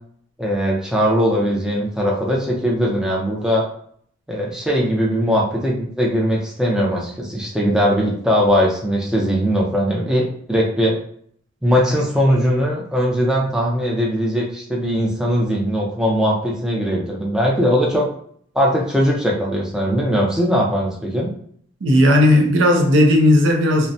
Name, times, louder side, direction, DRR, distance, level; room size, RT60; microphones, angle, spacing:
voice 1, 0.4-3.7 4.3-11.0 11.6-18.1 18.5-21.3, equal, 5° right, 0.4 m, -20 dB
voice 2, 21.8-23.9, left 1 dB, 90° right, 0.5 m, -14 dB
2.5 x 2.1 x 2.6 m
head